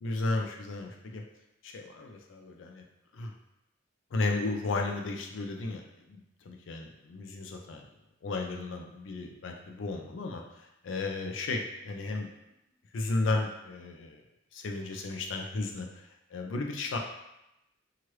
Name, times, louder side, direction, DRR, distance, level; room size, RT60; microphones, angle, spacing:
voice 1, 0.0-1.2 1.6-2.8 3.1-3.3 4.1-5.8 6.1-7.8 8.2-12.3 12.9-14.2 14.5-17.0, left 3 dB, 85° left, 2 dB, 0.4 m, -34 dB
3.0 x 2.4 x 3.1 m, 0.87 s
head